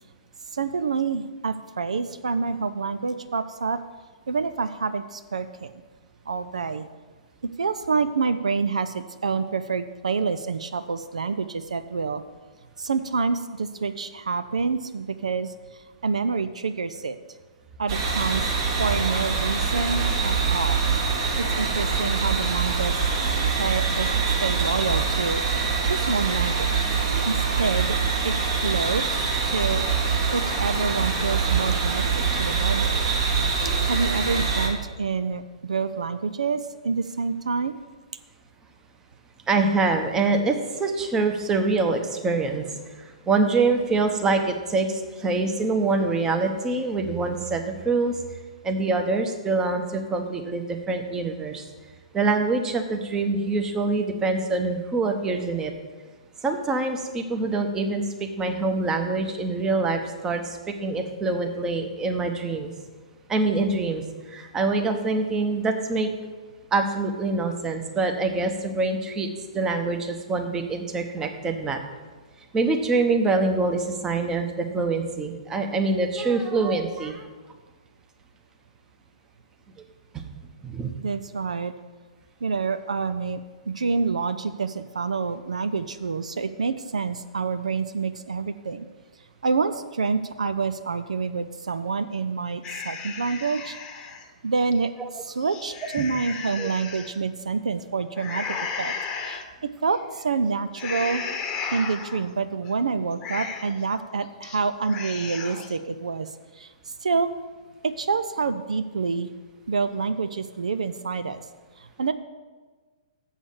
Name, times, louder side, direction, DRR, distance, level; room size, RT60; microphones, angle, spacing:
voice 1, 0.5-3.8 4.3-5.7 6.3-6.8 7.6-12.2 12.8-17.2 17.8-18.5 18.8-20.8 21.4-25.4 25.8-26.9 27.2-28.0 28.2-29.8 30.3-33.1 33.4-33.5 33.9-37.8 81.0-81.7 82.4-88.9 89.4-93.8 94.4-98.9 99.2-101.2 101.7-107.3 107.8-109.3 109.7-111.4 111.8-112.1, right 4 dB, 70° right, 12 dB, 0.4 m, -27 dB
sound 1, 17.9-34.7, right 5 dB, 45° right, 1.7 m, -24 dB
voice 2, 39.5-48.2 48.6-51.6 52.1-55.7 56.4-62.7 63.3-66.1 66.7-69.3 69.5-71.8 72.5-77.3 80.1-80.2 80.6-80.9 95.0-95.1 96.0-96.1 96.6-96.7, right 3 dB, 15° right, 5 dB, 1.0 m, -25 dB
sound 2, 92.6-94.2 94.7-94.8 95.3-97.1 98.2-99.4 99.9-100.2 100.7-102.3 102.7-102.8 103.1-103.8 104.2-104.6 104.8-105.8, left 6 dB, 25° left, 1.0 m, -34 dB
7.2 x 6.2 x 7.2 m, 1.4 s
figure-of-eight pair, 120°, 4 cm